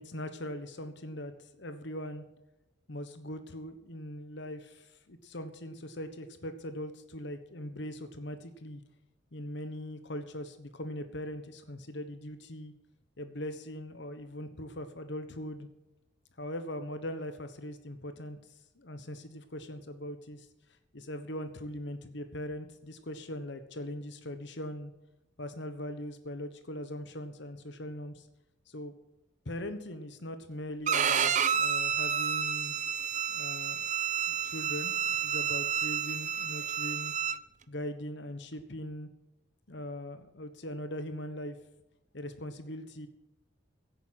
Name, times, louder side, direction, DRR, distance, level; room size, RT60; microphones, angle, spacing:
voice 1, 0.0-2.2 2.9-8.8 9.3-12.7 13.2-15.7 16.4-18.4 18.8-20.5 20.9-24.9 25.4-28.3 28.7-28.9 29.4-32.7 33.3-33.8 34.4-34.9 35.2-37.1 37.7-39.1 39.7-41.6 42.1-43.1, left 1 dB, 60° left, 8 dB, 1.3 m, -40 dB
Bowed string instrument, 30.9-37.4, right 8 dB, 40° right, 0.7 m, -30 dB
16.5 x 9.2 x 5.9 m, 0.92 s
head